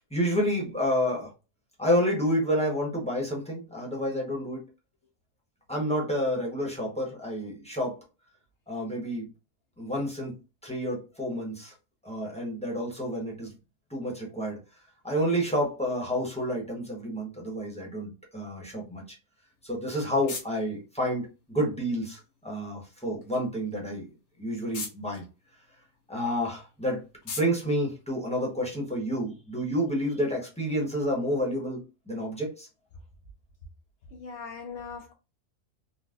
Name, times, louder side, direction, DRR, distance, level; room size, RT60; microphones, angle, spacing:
voice 1, 0.1-1.3 1.8-4.6 5.7-8.0 8.7-9.3 9.8-10.3 10.6-11.7 12.0-13.5 13.9-14.6 15.0-19.0 19.6-24.1 24.4-25.2 26.1-27.0 27.4-31.8 32.1-32.7, equal, 5° left, 0.8 m, -29 dB
sound 1, 19.5-28.9, left 4 dB, 85° left, 1.5 m, -46 dB
voice 2, 34.1-35.1, left 5 dB, 65° left, 0.8 m, -40 dB
3.9 x 2.1 x 2.4 m
omnidirectional pair, 1.5 m